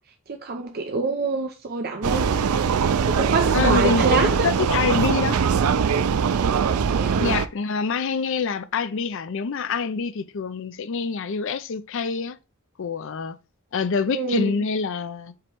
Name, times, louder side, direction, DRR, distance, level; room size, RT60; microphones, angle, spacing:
voice 1, 0.4-2.4 3.0-4.5 6.9-7.4 14.1-14.5, right 3 dB, 45° right, 0.6 m, -26 dB
Vehicle, 2.0-7.5, right 6 dB, 85° right, 0.4 m, -21 dB
sound 1, 3.4-5.7, equal, 65° right, 1.8 m, -34 dB
voice 2, 3.5-5.4 7.2-12.4 12.8-13.4 13.7-15.3, left 5 dB, 60° left, 0.5 m, -26 dB
7.4 x 3.0 x 4.5 m
head